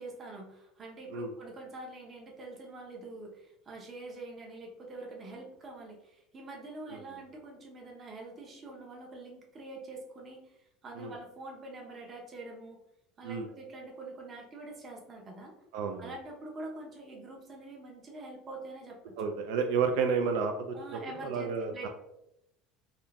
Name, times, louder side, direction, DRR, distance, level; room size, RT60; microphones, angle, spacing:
voice 1, 0.0-12.8 13.2-15.5 16.0-19.2 20.7-21.9, right 2 dB, 25° right, 0 dB, 0.7 m, -45 dB
voice 2, 15.7-16.1 19.2-21.9, right 5 dB, 75° right, 4 dB, 0.4 m, -31 dB
3.6 x 2.7 x 2.2 m, 0.83 s
cardioid pair, 155°, 0 cm